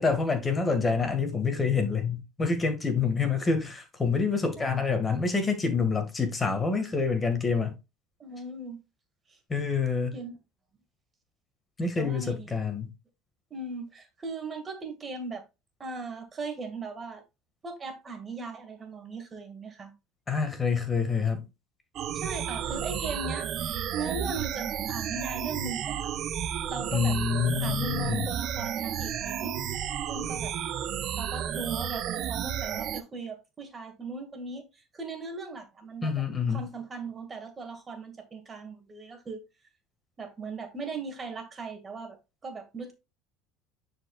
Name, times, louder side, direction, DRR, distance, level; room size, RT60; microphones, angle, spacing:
voice 1, 0.0-7.8 9.5-10.2 11.8-12.9 20.3-21.5 26.9-28.2 36.0-36.7, left 5 dB, 20° left, 1.9 m, -27 dB
voice 2, 8.2-8.8 9.3-9.4 10.1-10.4 12.0-12.6 13.5-15.4 15.8-17.2 17.6-19.9 22.1-26.1 26.7-27.2 27.6-29.6 30.1-30.5 31.2-36.2 36.5-39.4 40.2-42.9, right 3 dB, 25° right, 2.0 m, -38 dB
sound 1, 22.0-33.0, right 9 dB, 50° right, 0.8 m, -32 dB
9.8 x 4.9 x 2.4 m
supercardioid pair, 105°, 0 cm